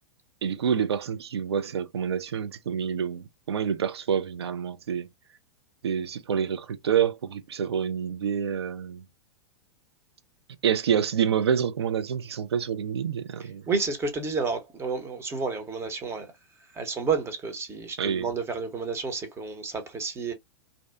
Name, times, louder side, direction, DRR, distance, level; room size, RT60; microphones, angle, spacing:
voice 1, 0.4-5.1 5.8-9.0 10.6-13.7 18.0-18.3, right 8 dB, 70° right, 0.4 m, -27 dB
voice 2, 13.4-16.3 16.7-20.3, right 4 dB, 15° right, 0.7 m, -30 dB
2.6 x 2.1 x 2.3 m
figure-of-eight pair, 100°, 14 cm